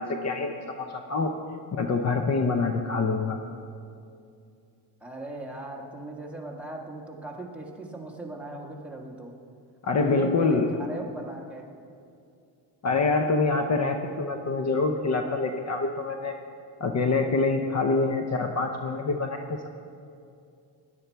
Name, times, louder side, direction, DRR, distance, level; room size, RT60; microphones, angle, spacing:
voice 1, 0.0-1.3 1.7-3.4 9.8-10.7 12.8-16.3 16.8-19.7, left 3 dB, 40° left, 5 dB, 0.8 m, -26 dB
voice 2, 5.0-9.4 9.8-11.7, right 2 dB, 5° right, -1 dB, 1.5 m, -38 dB
16.5 x 11.5 x 4.6 m, 2.5 s
cardioid pair, 140°, 43 cm